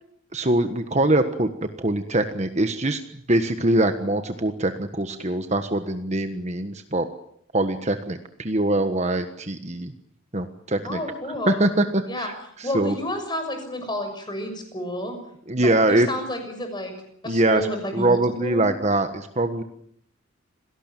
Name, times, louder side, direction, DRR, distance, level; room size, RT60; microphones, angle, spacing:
voice 1, 0.3-3.0 3.3-7.1 7.5-9.9 10.3-11.0 11.5-12.3 12.6-12.9 15.5-16.1 17.2-17.7 17.9-19.6, right 1 dB, 30° right, 8 dB, 1.4 m, -23 dB
voice 2, 10.8-11.7 12.1-12.3 12.6-15.2 15.6-16.9 17.2-18.7, left 1 dB, 20° left, 6 dB, 6.6 m, -30 dB
26.5 x 18.0 x 9.1 m, 0.69 s
head